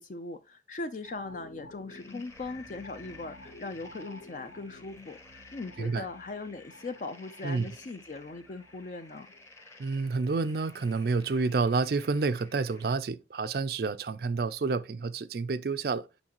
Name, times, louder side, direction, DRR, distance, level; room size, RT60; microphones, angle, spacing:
voice 1, 0.0-9.3, left 3 dB, 45° left, 0.5 m, -40 dB
sound 1, 1.0-10.3 10.7-10.8, left 2 dB, 85° left, 1.5 m, -52 dB
sound 2, 1.9-13.0, left 2 dB, 15° left, 0.9 m, -55 dB
voice 2, 9.8-16.0, right 4 dB, 55° right, 0.4 m, -29 dB
7.1 x 5.2 x 2.9 m
head